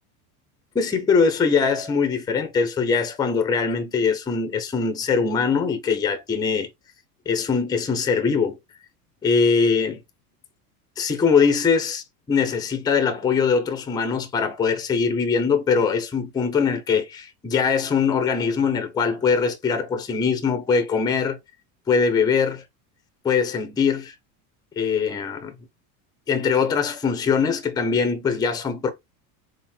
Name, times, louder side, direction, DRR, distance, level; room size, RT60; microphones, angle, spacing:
voice 1, 0.7-6.7 7.3-8.6 9.2-10.0 11.0-21.4 21.9-22.6 23.2-24.1 24.8-25.5 26.3-28.9, left 5 dB, 10° left, 0.6 m, -22 dB
3.6 x 2.6 x 4.2 m
supercardioid pair, 140°, 45 cm